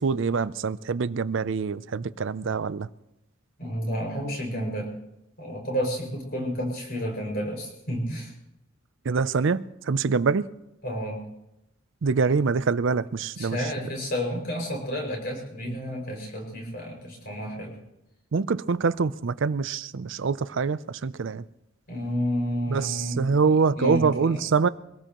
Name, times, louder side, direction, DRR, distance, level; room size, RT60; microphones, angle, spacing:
voice 1, 0.0-2.9 9.1-10.5 12.0-13.6 18.3-21.4 22.7-24.7, right 5 dB, 60° right, 0.5 m, -25 dB
voice 2, 3.6-4.9 5.4-8.3 10.8-11.2 13.4-17.8 21.9-24.4, equal, 50° left, 5.8 m, -31 dB
24.0 x 18.0 x 3.0 m
head